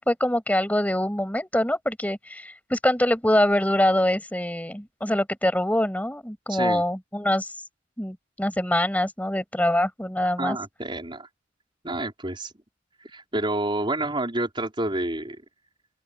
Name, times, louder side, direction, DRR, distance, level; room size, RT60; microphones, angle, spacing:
voice 1, 0.0-7.5 8.0-10.6, left 1 dB, 10° left, 6.6 m, -24 dB
voice 2, 6.5-6.8 10.4-11.3 11.8-12.5 13.0-15.4, right 2 dB, 25° right, 5.1 m, -28 dB
open air
head